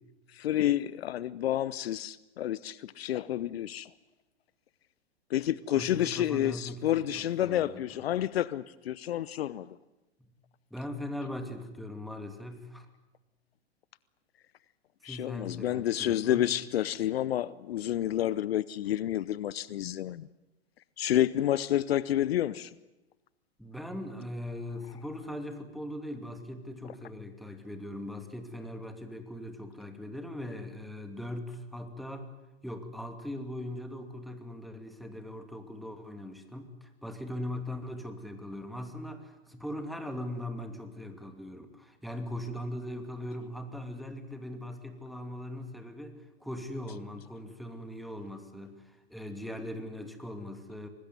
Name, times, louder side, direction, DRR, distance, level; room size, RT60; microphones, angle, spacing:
voice 1, 0.3-3.9 5.3-9.8 15.0-20.3 21.0-22.7, left 12 dB, 65° left, 19 dB, 0.8 m, -29 dB
voice 2, 5.7-7.9 10.7-12.9 15.0-16.5 23.6-32.3 32.6-50.9, left 1 dB, ahead, 6 dB, 2.6 m, -40 dB
24.5 x 20.0 x 9.4 m, 0.99 s
hypercardioid pair, 110°, 33 cm